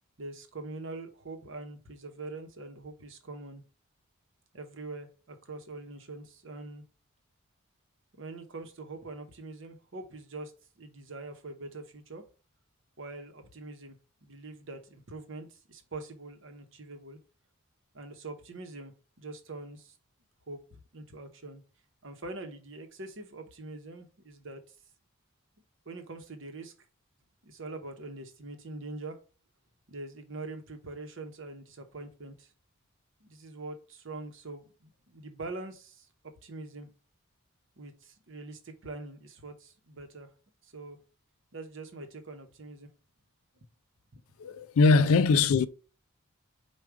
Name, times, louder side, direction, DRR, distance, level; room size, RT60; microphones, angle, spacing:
voice 1, 0.2-3.6 4.5-6.8 8.2-10.5 10.8-12.2 13.0-17.2 17.9-19.9 20.5-21.6 22.0-24.6 25.9-26.7 27.4-29.2 29.9-32.5 33.2-36.1 36.4-36.9 37.8-40.3 40.6-41.0 41.5-42.9 43.5-43.7 44.1-44.7 45.0-45.2, right 2 dB, 60° right, 0.9 m, -43 dB
voice 2, 44.4-45.7, left 4 dB, 75° left, 0.4 m, -21 dB
4.8 x 2.3 x 4.6 m
head